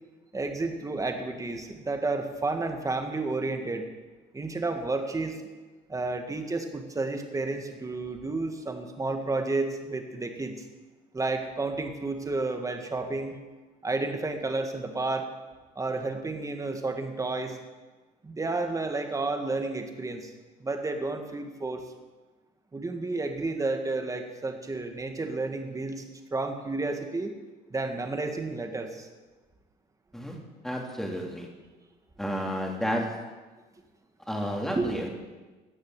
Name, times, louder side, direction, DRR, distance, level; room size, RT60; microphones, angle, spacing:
voice 1, 0.3-3.9 4.3-5.4 5.9-10.6 11.1-13.3 13.8-15.3 15.8-17.6 18.2-20.3 20.6-21.8 22.7-26.0 26.3-27.3 27.7-29.1 34.8-35.0, right 3 dB, 20° right, 5 dB, 1.8 m, -31 dB
voice 2, 30.6-31.5 32.2-33.0 34.3-35.1, equal, ahead, 0 dB, 3.0 m, -31 dB
16.0 x 6.5 x 8.9 m, 1.3 s
cardioid pair, 110°, 17 cm